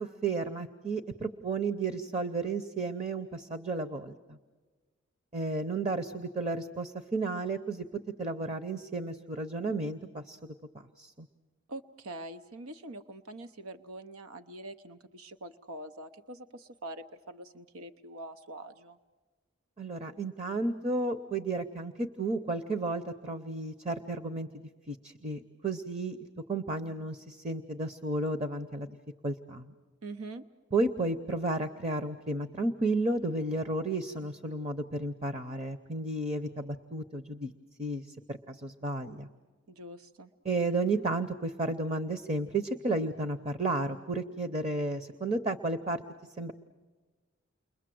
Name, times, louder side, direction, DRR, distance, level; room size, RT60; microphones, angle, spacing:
voice 1, 0.0-4.4 5.3-7.9 8.2-10.5 11.0-11.3 19.8-24.5 24.9-26.2 26.5-29.0 29.2-29.7 30.7-37.5 37.8-39.3 40.4-46.0 46.4-46.5, right 2 dB, 30° right, 9 dB, 0.8 m, -33 dB
voice 2, 11.7-19.0 30.0-30.4 39.7-40.3, right 2 dB, 85° right, 9 dB, 0.8 m, -44 dB
30.0 x 22.0 x 7.7 m, 1.3 s
head